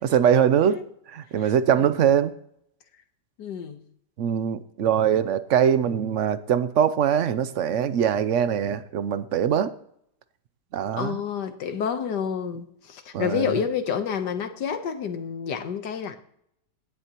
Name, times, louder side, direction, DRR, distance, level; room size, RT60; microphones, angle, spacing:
voice 1, 0.0-0.8 1.1-2.3 4.2-9.7 10.7-11.2 13.1-13.5, right 8 dB, 65° right, 0.7 m, -22 dB
voice 2, 1.4-1.9 3.4-3.8 11.0-16.2, left 7 dB, 70° left, 1.6 m, -29 dB
17.5 x 11.0 x 3.0 m
omnidirectional pair, 1.9 m